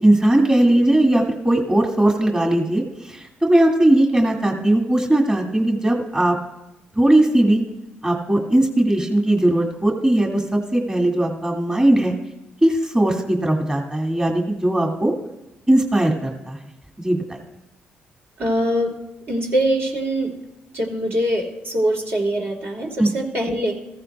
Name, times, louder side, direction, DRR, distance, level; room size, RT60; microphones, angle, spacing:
voice 1, 0.0-2.8 3.1-3.2 3.5-6.4 7.0-7.6 8.0-12.1 12.6-15.1 15.7-16.6 17.0-17.2 23.0-23.1, right 1 dB, 20° right, 1 dB, 1.9 m, -18 dB
voice 2, 18.4-19.0 19.3-20.3 20.7-23.7, right 1 dB, 60° right, -1 dB, 2.7 m, -23 dB
14.5 x 14.5 x 2.3 m, 0.95 s
supercardioid pair, 50°, 4 cm